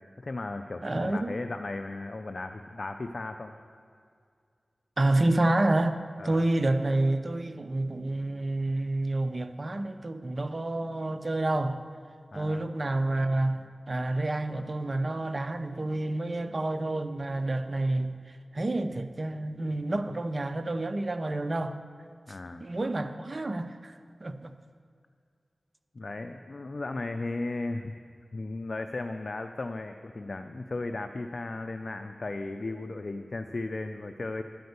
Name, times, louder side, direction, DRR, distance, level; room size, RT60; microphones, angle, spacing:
voice 1, 0.2-3.5 6.2-6.4 12.3-12.6 22.3-22.6 25.9-28.0 28.3-34.4, left 2 dB, 60° left, 0.4 m, -36 dB
voice 2, 0.8-1.3 5.0-6.0 6.2-11.8 12.3-21.8 22.6-24.5, right 2 dB, 45° right, 0.6 m, -29 dB
10.0 x 5.2 x 8.0 m
cardioid pair, 45°, 0 cm